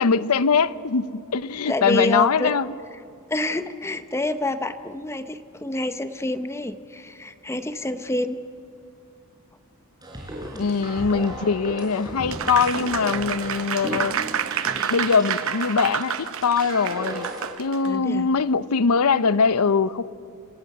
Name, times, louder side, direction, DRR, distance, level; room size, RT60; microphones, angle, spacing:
voice 1, 0.0-2.7 10.6-14.2 14.9-17.3 17.6-20.0, left 5 dB, 75° left, 0.6 m, -22 dB
voice 2, 1.7-2.5 3.3-8.4 10.5-10.7 17.8-18.3, left 1 dB, 10° left, 0.7 m, -27 dB
sound 1, 10.0-17.5, right 1 dB, 20° right, 4.4 m, -35 dB
Applause, 12.3-17.9, right 8 dB, 65° right, 0.8 m, -29 dB
26.0 x 17.5 x 7.8 m
head